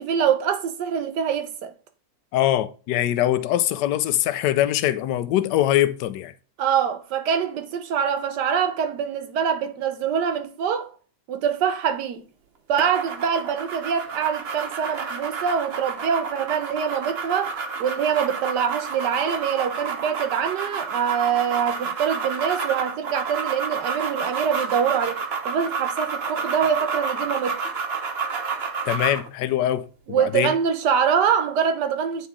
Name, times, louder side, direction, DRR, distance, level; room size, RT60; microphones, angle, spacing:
voice 1, 0.0-1.7 6.6-10.9 11.3-12.2 12.7-27.6 30.1-32.3, right 7 dB, 75° right, 1.4 m, -24 dB
voice 2, 2.3-6.3 28.9-30.5, left 13 dB, 75° left, 1.1 m, -23 dB
sound 1, 12.8-29.3, right 5 dB, 50° right, 0.8 m, -30 dB
9.1 x 3.2 x 3.6 m
omnidirectional pair, 1.9 m